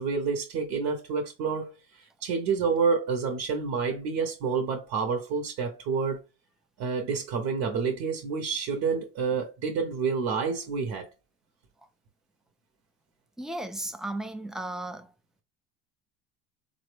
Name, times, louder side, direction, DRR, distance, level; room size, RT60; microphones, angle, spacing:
voice 1, 0.0-6.2 6.8-11.1, right 5 dB, 60° right, 0.8 m, -28 dB
voice 2, 13.4-15.1, right 1 dB, ahead, 0.4 m, -35 dB
3.9 x 2.1 x 3.2 m
supercardioid pair, 80°, 31 cm